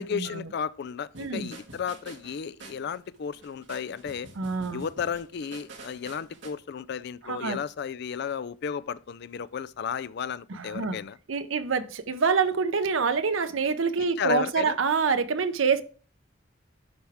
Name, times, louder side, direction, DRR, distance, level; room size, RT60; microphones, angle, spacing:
voice 1, 0.0-4.3 4.7-11.2 14.2-14.8, left 7 dB, 60° left, 0.4 m, -33 dB
sound 1, 1.1-6.5, right 2 dB, 65° right, 1.6 m, -48 dB
voice 2, 1.2-1.5 4.4-4.8 7.3-7.6 10.5-11.0 11.3-15.8, right 5 dB, 90° right, 0.7 m, -26 dB
11.5 x 4.7 x 3.5 m
head